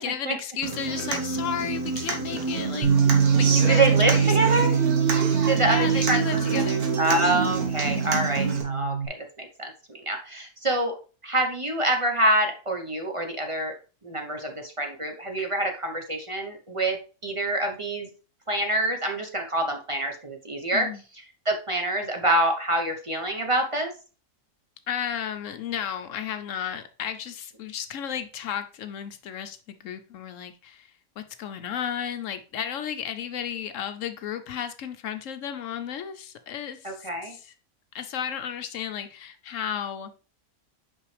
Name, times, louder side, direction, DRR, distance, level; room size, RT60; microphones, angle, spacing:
voice 1, 0.0-4.6 5.7-6.8 7.1-7.6 7.9-8.3 20.7-21.0 24.9-30.9 31.2-37.5 37.9-40.1, left 8 dB, 70° left, 9 dB, 0.9 m, -34 dB
Human voice / Acoustic guitar, 0.6-8.6, right 4 dB, 85° right, 1.7 m, -28 dB
Bass guitar, 2.8-9.1, right 6 dB, 70° right, 1.5 m, -24 dB
voice 2, 3.7-4.7 5.4-6.6 7.0-10.9 11.2-13.7 14.0-18.1 18.5-20.9 21.4-23.9 36.8-37.3, right 1 dB, 30° right, 3 dB, 0.7 m, -26 dB
5.7 x 5.4 x 3.2 m, 0.34 s
omnidirectional pair, 1.5 m